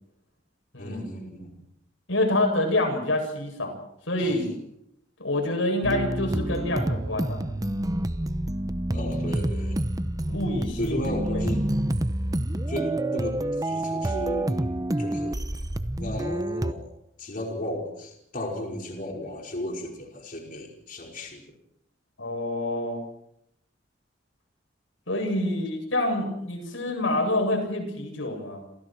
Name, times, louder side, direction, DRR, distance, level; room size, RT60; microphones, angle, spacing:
voice 1, 0.8-1.6 4.2-4.4 8.9-9.8 10.8-11.6 12.7-14.7 15.0-15.6 16.0-16.9 17.2-21.5, left 1 dB, 45° left, 0 dB, 5.3 m, -35 dB
voice 2, 2.1-3.7 4.1-4.5 5.2-7.5 10.3-11.0 11.3-11.5 22.2-23.0 25.1-28.7, left 1 dB, 90° left, 4 dB, 7.9 m, -27 dB
sound 1, 5.8-16.7, right 1 dB, 20° right, 0.9 m, -28 dB
29.5 x 28.0 x 4.7 m, 0.76 s
head